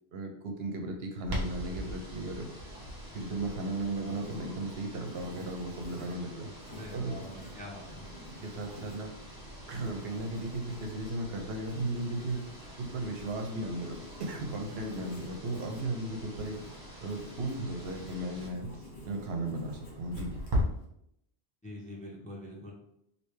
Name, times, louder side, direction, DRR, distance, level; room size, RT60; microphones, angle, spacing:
voice 1, 0.1-2.5 3.1-6.5 6.9-7.2 8.4-9.1 9.7-12.4 12.8-16.6 17.0-20.3, right 2 dB, 70° right, 3 dB, 0.8 m, -36 dB
Clock, 1.2-20.6, equal, 45° right, 1.0 m, -43 dB
sound 1, 1.3-18.5, right 1 dB, 20° right, 0.9 m, -50 dB
Writing, 3.7-20.8, left 1 dB, 50° left, 1.0 m, -51 dB
voice 2, 6.7-8.1 21.6-22.7, left 1 dB, 10° left, -3 dB, 0.5 m, -44 dB
3.2 x 2.7 x 3.1 m, 0.76 s
omnidirectional pair, 1.1 m